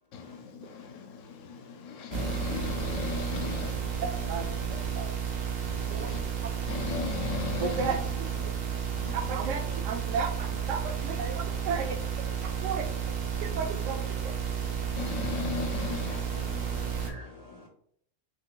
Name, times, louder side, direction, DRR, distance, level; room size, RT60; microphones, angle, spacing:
voice 1, 0.1-5.0 5.6-6.2 6.7-8.0 8.4-8.5 8.9-9.4 13.4-13.6 13.9-14.0 15.0-17.1, left 6 dB, 85° left, 1.0 m, -38 dB
sound 1, 2.1-17.1, right 7 dB, 65° right, 0.4 m, -32 dB
voice 2, 7.6-8.0 9.1-11.9 12.6-12.8 13.4-14.0, right 5 dB, 80° right, 0.9 m, -33 dB
voice 3, 16.2-17.7, left 2 dB, 60° left, 0.4 m, -50 dB
2.6 x 2.3 x 3.6 m
omnidirectional pair, 1.3 m